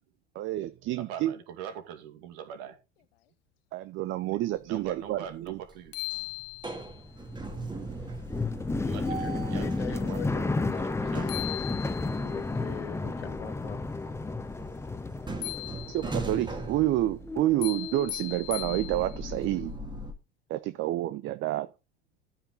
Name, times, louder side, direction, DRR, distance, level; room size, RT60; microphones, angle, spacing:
voice 1, 0.3-1.3 3.7-5.6 15.9-19.7 20.5-21.7, right 15 dB, 40° right, 0.7 m, -29 dB
voice 2, 1.0-2.8 4.2-4.4 4.6-6.0 8.8-10.4 10.7-11.4, right 8 dB, 55° right, 2.3 m, -43 dB
sound 1, 4.6-5.1 5.5-20.1, right 2 dB, 15° right, 2.1 m, -41 dB
sound 2, 5.5-5.6 5.9-7.0 10.9-11.0 11.3-12.3 15.4-16.3 17.6-19.3, left 19 dB, 65° left, 0.7 m, -38 dB
sound 3, 6.9-17.0 17.2-18.1, left 3 dB, 10° left, 0.8 m, -33 dB
voice 3, 9.2-11.5 12.2-13.8, left 8 dB, 80° left, 1.0 m, -42 dB
13.5 x 6.0 x 3.9 m
figure-of-eight pair, 70°, 32 cm